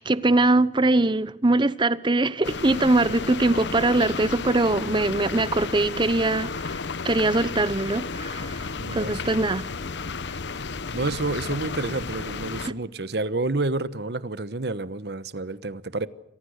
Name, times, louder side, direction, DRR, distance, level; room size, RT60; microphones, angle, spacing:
voice 1, 0.0-6.8 7.0-9.6, right 2 dB, 25° right, 0.9 m, -22 dB
sound 1, 2.4-12.7, left 4 dB, 75° left, 0.9 m, -33 dB
voice 2, 8.8-9.2 10.9-16.1, right 2 dB, 65° right, 1.1 m, -29 dB
28.5 x 23.5 x 6.5 m
head